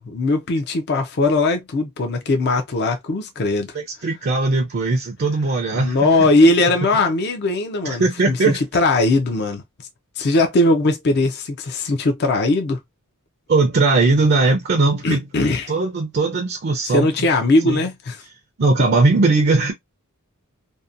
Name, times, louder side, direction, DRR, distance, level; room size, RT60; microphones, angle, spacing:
voice 1, 0.0-3.8 5.7-9.6 10.2-12.8 15.0-15.7 16.9-18.2, left 2 dB, 50° left, 0.4 m, -19 dB
voice 2, 3.7-6.7 7.8-8.6 13.5-15.2 15.7-17.1 17.6-17.8 18.6-19.7, right 3 dB, 45° right, 0.4 m, -19 dB
2.7 x 2.1 x 2.4 m
head